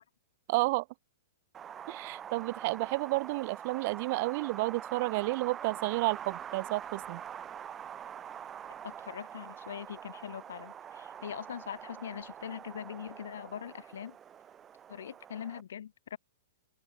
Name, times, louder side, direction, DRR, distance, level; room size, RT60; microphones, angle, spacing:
voice 1, 0.5-0.8 1.9-7.2, right 23 dB, 40° right, 3.3 m, -31 dB
Wind, 1.5-15.6, right 9 dB, 15° right, 1.4 m, -45 dB
voice 2, 8.8-14.2 14.9-16.2, left 9 dB, 85° left, 4.8 m, -42 dB
open air
supercardioid pair, 165°, 0 cm